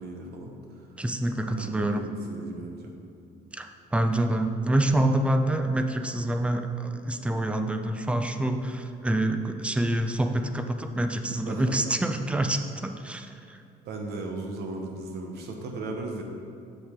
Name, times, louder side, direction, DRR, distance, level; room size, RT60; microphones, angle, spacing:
voice 1, 0.0-0.9 1.5-2.0 2.3-2.9 11.4-11.8 13.8-16.2, right 2 dB, 75° right, 1 dB, 1.1 m, -36 dB
voice 2, 1.0-2.1 3.5-13.6, right 1 dB, 5° right, 7 dB, 0.5 m, -27 dB
8.1 x 6.5 x 3.7 m, 2.5 s
cardioid pair, 110°, 17 cm